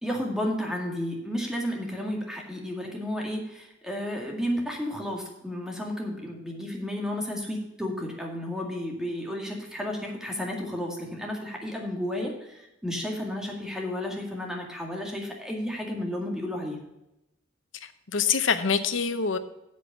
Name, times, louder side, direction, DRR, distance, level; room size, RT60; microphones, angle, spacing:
voice 1, 0.0-16.8, left 1 dB, 5° right, 0 dB, 2.0 m, -32 dB
voice 2, 17.8-19.4, left 6 dB, 70° left, 9 dB, 0.9 m, -25 dB
8.2 x 8.1 x 5.1 m, 0.90 s
head